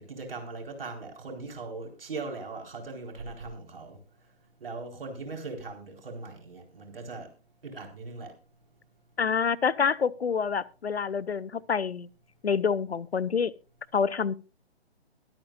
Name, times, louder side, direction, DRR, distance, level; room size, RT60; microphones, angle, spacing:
voice 1, 0.0-4.0 4.6-7.3 7.6-8.3, right 3 dB, 60° right, 4.3 m, -39 dB
voice 2, 9.2-12.1 12.4-13.5 13.9-14.4, left 6 dB, 70° left, 0.8 m, -27 dB
22.5 x 9.0 x 2.5 m
figure-of-eight pair, 135°, 33 cm